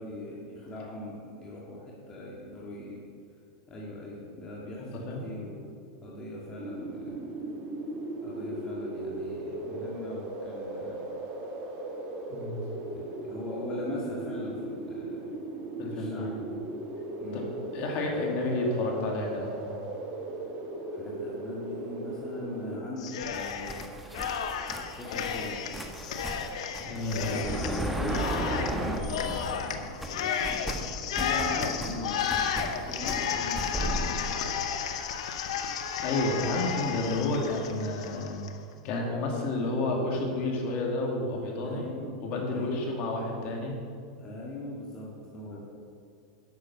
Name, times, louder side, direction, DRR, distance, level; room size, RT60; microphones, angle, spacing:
voice 1, 0.0-3.0 3.7-5.7 6.0-7.1 8.2-11.0 12.9-15.3 15.9-16.3 17.2-17.5 20.9-23.8 24.9-25.7 27.9-30.5 31.1-34.5 41.6-42.1 42.5-42.9 44.2-45.6, left 1 dB, 25° left, -4 dB, 1.9 m, -40 dB
voice 2, 4.8-5.3 12.3-12.6 15.8-16.4 17.3-17.4 17.7-19.5 26.8-28.2 36.0-38.4 38.8-41.9 42.2-43.7, left 2 dB, 50° left, 0 dB, 2.5 m, -31 dB
sound 1, 6.6-22.8, right 2 dB, 40° right, 2.0 m, -37 dB
Cheering, 23.0-23.8 24.1-38.5, left 7 dB, 75° left, 0.9 m, -33 dB
sound 2, 23.3-29.7 30.0-34.1, right 1 dB, 5° right, 1.1 m, -35 dB
10.5 x 6.7 x 5.5 m, 2.3 s
hypercardioid pair, 115°, 3 cm